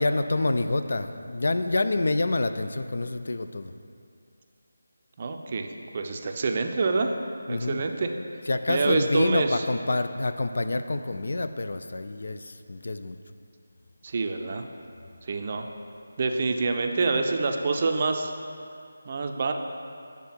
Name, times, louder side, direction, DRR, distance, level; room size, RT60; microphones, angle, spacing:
voice 1, 0.0-3.7 7.5-7.8 8.5-13.2, left 2 dB, 60° left, 9 dB, 0.3 m, -27 dB
voice 2, 5.2-5.7 5.9-7.1 7.5-8.1 8.7-9.7 14.0-14.7 15.2-15.7 16.2-18.3 19.0-19.5, right 4 dB, 35° right, 4 dB, 0.4 m, -26 dB
7.4 x 3.5 x 5.8 m, 2.4 s
figure-of-eight pair, 160°, 0 cm